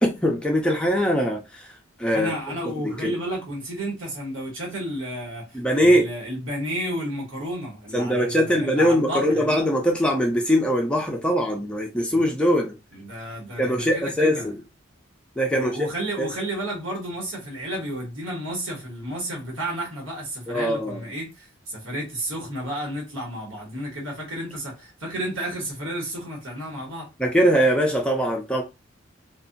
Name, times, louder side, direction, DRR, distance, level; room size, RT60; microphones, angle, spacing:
voice 1, 0.0-1.7 2.0-2.3 3.0-3.2 5.5-6.1 7.9-12.8 13.6-14.5 15.4-15.9 16.2-16.3 20.5-21.0 27.2-28.6, equal, 5° left, 0.5 m, -21 dB
voice 2, 2.1-9.6 12.1-12.2 12.9-14.5 15.5-27.1, right 1 dB, 75° right, 1.3 m, -32 dB
2.7 x 2.4 x 2.5 m
head